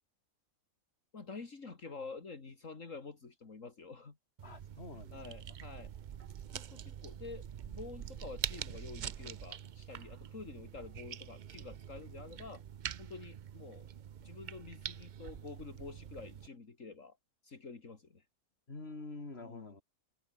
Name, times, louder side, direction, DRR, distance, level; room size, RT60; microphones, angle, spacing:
voice 1, 1.1-4.2 4.9-5.9 6.5-12.6 13.0-13.9 14.2-17.2 17.4-18.3 19.4-19.7, left 4 dB, 60° left, 2.9 m, -48 dB
voice 2, 4.4-5.2 18.7-19.8, left 3 dB, 45° left, 3.7 m, -46 dB
sound 1, 4.4-16.5, right 9 dB, 70° right, 0.4 m, -45 dB
omnidirectional pair, 1.5 m